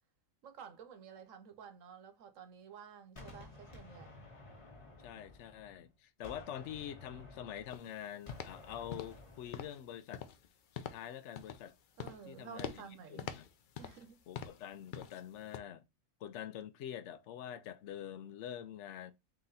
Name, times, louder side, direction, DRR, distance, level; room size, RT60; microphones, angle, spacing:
voice 1, 0.4-4.3 12.0-13.4 13.8-14.2, right 7 dB, 70° right, 1.1 m, -52 dB
Gunshot gunfire, 3.2-5.9 6.2-9.8, left 2 dB, 25° left, 1.0 m, -54 dB
voice 2, 5.0-10.3 10.7-11.7 12.3-13.4 14.3-15.8 16.2-19.1, left 10 dB, 65° left, 0.8 m, -46 dB
sound 1, 7.7-7.9 8.3-8.6 8.9-9.3 9.5-9.8 10.1-10.5 10.8-11.1 11.4-11.7 12.0-12.3 12.6-12.9 13.2-14.1 14.4-14.7 14.9-15.2 15.5-15.6, left 8 dB, 85° left, 0.4 m, -44 dB
3.8 x 2.9 x 3.9 m
omnidirectional pair, 1.4 m